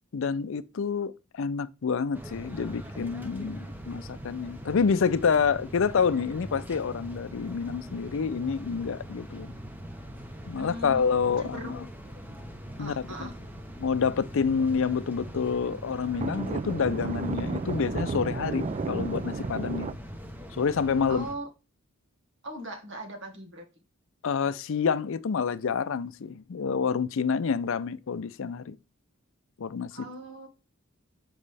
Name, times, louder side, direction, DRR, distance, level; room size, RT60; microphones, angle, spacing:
voice 1, 0.1-9.5 10.5-11.8 12.8-13.3 13.8-20.0 20.5-21.3 24.2-28.8 29.6-29.9, left 6 dB, 65° left, 0.5 m, -28 dB
sound 1, 2.1-21.3, equal, 10° right, 0.9 m, -42 dB
sound 2, 2.8-3.1 3.3-3.4 3.8-3.9 4.5-4.8 5.2-5.3 5.9-6.7 7.2-7.3 7.9-9.8 10.2-10.6 11.1-11.2 11.8-11.9 12.0-13.6 13.9-14.1 14.4-14.5 14.8-14.9 15.1-15.2 15.6-19.9, right 4 dB, 30° right, 0.3 m, -34 dB
voice 2, 10.6-11.0 11.4-11.7 12.8-13.4 21.1-21.5 22.4-23.7 29.9-30.5, right 1 dB, 60° right, 1.7 m, -39 dB
7.4 x 5.3 x 3.4 m
head